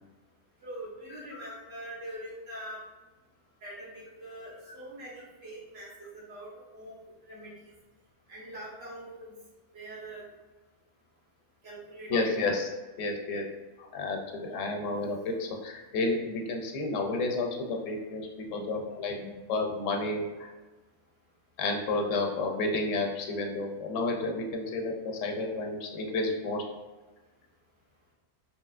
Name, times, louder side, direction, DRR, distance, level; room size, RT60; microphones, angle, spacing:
voice 1, 0.6-2.8 3.6-7.5 8.3-9.4 9.7-10.2 11.6-12.3 18.5-18.7 19.1-19.3, right 1 dB, 60° right, -5 dB, 1.1 m, -43 dB
voice 2, 12.1-12.7 13.0-13.4 13.8-19.1 19.5-20.5 21.6-26.6, left 2 dB, 85° left, 2 dB, 0.9 m, -31 dB
3.2 x 2.7 x 2.4 m, 1.2 s
omnidirectional pair, 1.3 m